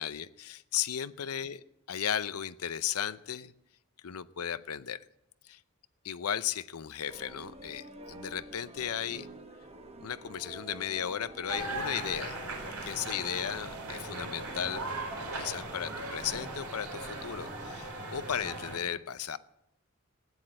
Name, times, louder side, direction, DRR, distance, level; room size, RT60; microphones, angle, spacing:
voice 1, 0.0-3.5 4.0-5.0 5.4-5.6 6.0-9.3 10.0-12.4 12.8-14.8 15.3-19.4, left 9 dB, 85° left, 15 dB, 0.6 m, -35 dB
sound 1, 7.1-17.8, right 2 dB, 30° right, 1.2 m, -49 dB
sound 2, 11.5-18.8, right 2 dB, 85° right, 3.9 m, -39 dB
16.0 x 10.0 x 7.6 m, 0.86 s
head